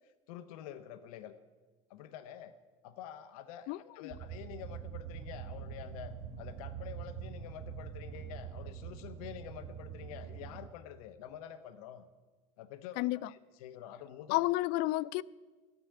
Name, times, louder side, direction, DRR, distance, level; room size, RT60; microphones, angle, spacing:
voice 1, 0.0-1.4 1.9-2.6 2.8-12.1 12.6-14.4, left 10 dB, 80° left, 1.0 m, -48 dB
voice 2, 3.7-4.1 13.0-13.3 14.3-15.2, left 18 dB, 60° left, 0.5 m, -31 dB
sound 1, 4.1-10.7, right 8 dB, 35° right, 1.4 m, -44 dB
13.0 x 9.3 x 9.9 m
supercardioid pair, 100°, 18 cm